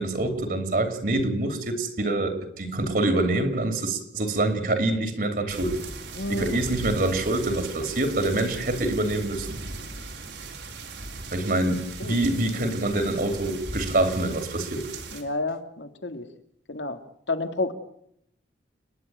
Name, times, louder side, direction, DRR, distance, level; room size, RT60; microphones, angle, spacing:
voice 1, 0.0-5.8 6.3-9.6 11.3-14.9, right 2 dB, 50° right, 2.7 m, -25 dB
sound 1, 5.5-15.2, right 2 dB, 80° right, 3.5 m, -38 dB
voice 2, 6.1-6.6 12.0-12.2 15.1-16.3 16.7-17.0 17.3-17.7, left 2 dB, 85° left, 1.9 m, -30 dB
30.0 x 10.0 x 9.2 m
head